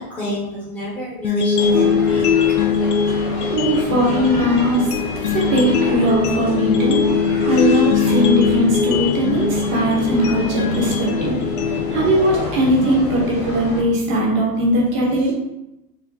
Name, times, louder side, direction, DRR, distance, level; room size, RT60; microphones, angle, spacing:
voice 1, 0.0-2.3 15.2-15.3, equal, 5° left, -10 dB, 1.3 m, -28 dB
sound 1, 1.2-13.3, left 6 dB, 65° left, 0.7 m, -21 dB
sound 2, 1.5-13.8, left 2 dB, 30° left, 1.3 m, -29 dB
voice 2, 3.5-4.9 5.3-7.0 7.4-11.3 11.9-15.3, equal, 35° right, -2 dB, 1.2 m, -19 dB
4.7 x 2.4 x 4.0 m, 0.90 s
supercardioid pair, 160°, 49 cm